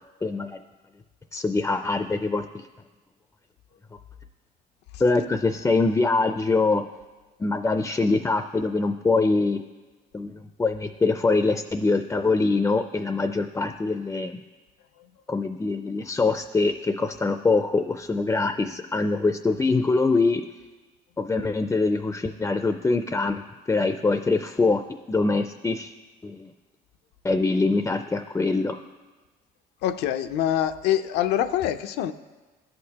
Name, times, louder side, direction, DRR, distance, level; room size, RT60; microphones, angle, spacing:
voice 1, 0.2-0.6 1.3-2.6 5.0-6.8 7.4-9.6 10.1-14.4 15.3-20.4 21.2-23.4 23.7-24.8 25.1-25.9 26.2-26.5 27.2-28.8, left 3 dB, 15° left, 8 dB, 0.3 m, -24 dB
voice 2, 29.8-32.1, left 11 dB, 85° left, 9 dB, 0.5 m, -25 dB
15.5 x 6.6 x 2.8 m, 1.2 s
cardioid pair, 110°, 17 cm